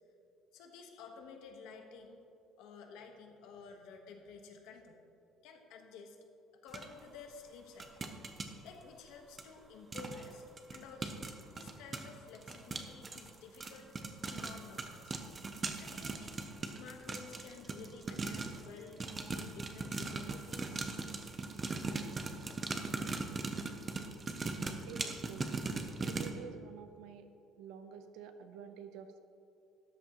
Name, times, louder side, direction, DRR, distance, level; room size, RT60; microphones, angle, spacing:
voice 1, 0.5-2.3 2.6-5.0 5.4-6.2 6.6-10.4 10.7-13.9 14.2-15.2 15.8-16.4 16.6-20.9 21.2-21.3, left 5 dB, 80° left, 4 dB, 1.2 m, -52 dB
sound 1, 6.7-6.8 7.8-8.5 9.4-9.5 9.9-10.3 10.6-18.7 19.0-26.3, right 3 dB, 20° right, 0.6 m, -39 dB
voice 2, 24.9-25.5 26.0-27.3 27.6-29.2, right 6 dB, 80° right, 8 dB, 0.7 m, -49 dB
13.0 x 10.0 x 3.0 m, 2.7 s
cardioid pair, 175°, 0 cm